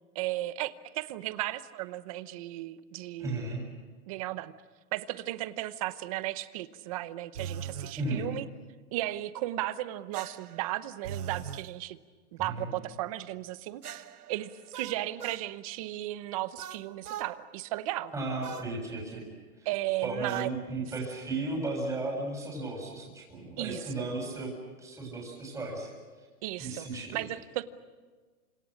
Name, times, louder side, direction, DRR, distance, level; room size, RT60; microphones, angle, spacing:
voice 1, 0.1-3.6 4.1-4.5 4.9-8.4 8.9-12.0 12.3-14.0 14.3-18.1 19.6-20.5 20.8-20.9 23.6-24.1 26.4-27.6, right 16 dB, 25° right, 14 dB, 0.8 m, -35 dB
voice 2, 3.2-3.6 8.0-8.3 12.4-12.7 18.1-19.3 19.6-19.7 20.0-24.5 24.8-25.9 26.2-26.3 26.6-27.2, right 2 dB, 5° right, -1 dB, 7.2 m, -35 dB
sound 1, 7.4-8.0 10.1-11.7 13.8-15.5 16.6-17.3 18.4-18.7 20.3-20.5, right 8 dB, 90° right, 1.5 m, -41 dB
29.5 x 26.5 x 6.4 m, 1.4 s
hypercardioid pair, 160°, 44 cm